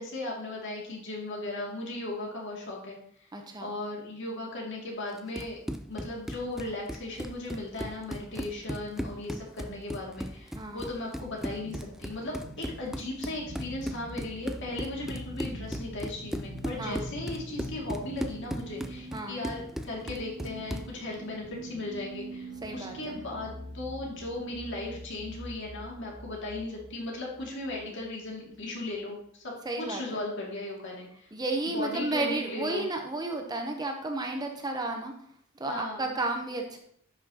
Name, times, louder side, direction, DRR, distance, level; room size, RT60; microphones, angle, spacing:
voice 1, 0.0-3.0 3.6-5.6 5.9-31.3 31.7-32.9 35.7-36.1, left 2 dB, 60° left, -2 dB, 2.3 m, -37 dB
voice 2, 3.3-3.7 10.5-10.8 16.8-17.0 19.1-19.4 22.6-23.2 29.6-30.0 31.3-35.1 35.6-36.8, right 2 dB, 20° right, 3 dB, 0.7 m, -32 dB
Run, 5.1-21.0, equal, ahead, 0.3 m, -38 dB
sound 1, 11.1-25.4, right 1 dB, 85° right, 1.2 m, -49 dB
sound 2, 13.5-29.0, right 1 dB, 80° left, 2.8 m, -45 dB
10.5 x 5.9 x 2.9 m, 0.66 s
head